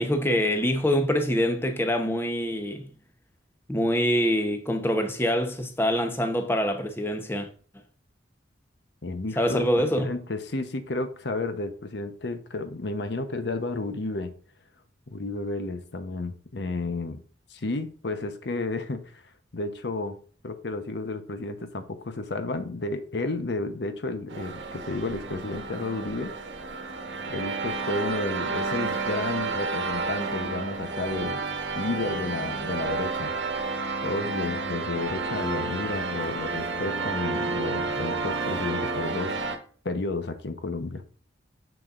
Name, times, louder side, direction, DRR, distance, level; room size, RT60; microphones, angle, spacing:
voice 1, 0.0-2.9 3.7-7.5 9.4-10.2, equal, 10° left, 0.8 m, -25 dB
voice 2, 9.0-14.3 15.1-17.2 17.5-19.2 19.5-20.2 20.4-26.3 27.3-31.4 31.8-33.3 34.0-39.4 39.8-41.0, left 2 dB, 65° left, 0.9 m, -32 dB
sound 1, 24.3-39.6, right 3 dB, 80° right, 1.2 m, -31 dB
7.0 x 6.2 x 2.5 m
head